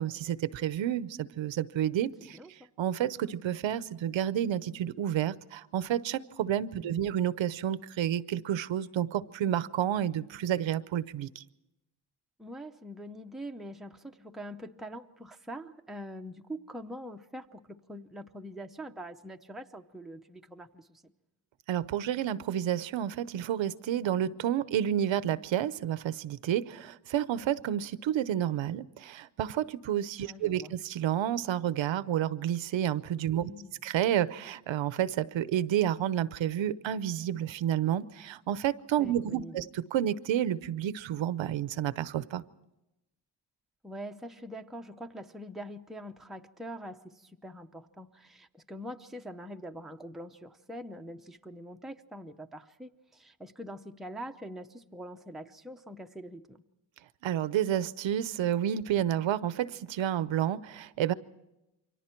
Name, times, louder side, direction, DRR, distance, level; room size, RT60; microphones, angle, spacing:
voice 1, 0.0-2.4 2.8-11.4 21.7-33.5 33.8-42.4 57.2-61.1, right 10 dB, 70° right, 16 dB, 0.8 m, -30 dB
voice 2, 2.2-2.7 6.8-7.0 12.4-21.1 30.2-30.7 33.4-33.7 39.0-39.7 43.8-56.6, equal, ahead, 4 dB, 0.7 m, -44 dB
28.5 x 24.0 x 4.5 m, 0.93 s
cardioid pair, 130°, 47 cm